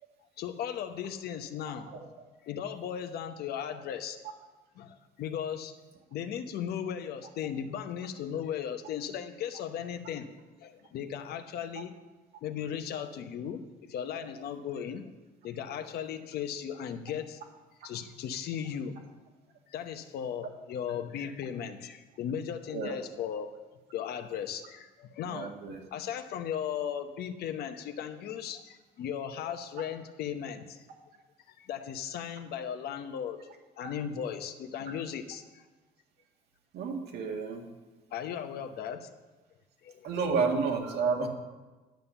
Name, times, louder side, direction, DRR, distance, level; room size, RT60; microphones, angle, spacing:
voice 1, 0.4-1.9 2.4-4.2 4.8-5.7 6.1-10.3 10.6-11.9 12.4-13.6 13.9-15.0 15.4-17.4 17.8-19.0 19.7-23.5 23.9-25.5 25.9-30.8 31.6-33.4 33.8-35.4 38.1-39.1 39.8-40.1, left 8 dB, 70° left, 8 dB, 1.0 m, -36 dB
voice 2, 25.3-25.8 33.8-33.9 36.7-37.7 40.0-41.3, right 5 dB, 75° right, 1 dB, 2.0 m, -30 dB
10.5 x 7.3 x 6.9 m, 1.2 s
cardioid pair, 110°, 17 cm